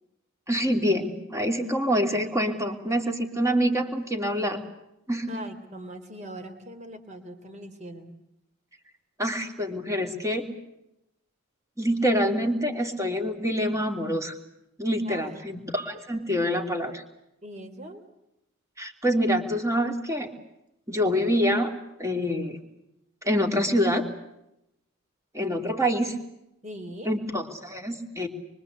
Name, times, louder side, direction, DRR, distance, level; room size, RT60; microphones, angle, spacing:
voice 1, 0.5-4.6 5.1-5.4 9.2-10.5 11.8-14.3 14.8-17.0 18.8-20.3 20.9-21.7 22.0-22.6 23.2-24.0 25.3-26.2 27.0-28.3, equal, 15° right, 4 dB, 3.1 m, -26 dB
voice 2, 5.3-8.2 15.0-15.3 17.4-18.0 26.6-27.2, right 1 dB, 35° right, 8 dB, 3.4 m, -41 dB
25.0 x 24.5 x 8.2 m, 0.84 s
head